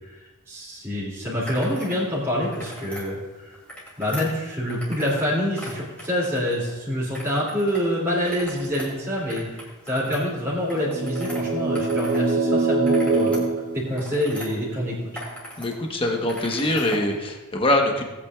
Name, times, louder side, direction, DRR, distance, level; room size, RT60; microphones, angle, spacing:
voice 1, 0.5-3.6 4.0-15.0, equal, 10° right, -9 dB, 2.5 m, -26 dB
sound 1, 1.4-2.0 2.4-3.1 3.5-5.3 5.5-6.7 7.1-7.8 8.1-12.2 12.6-14.5 14.9-15.7 16.0-17.1, equal, 5° left, 2.6 m, -40 dB
sound 2, 10.7-14.6, right 3 dB, 90° right, 1.0 m, -24 dB
voice 2, 15.6-18.0, left 1 dB, 25° left, 2 dB, 1.1 m, -23 dB
18.5 x 8.5 x 2.4 m, 1.2 s
head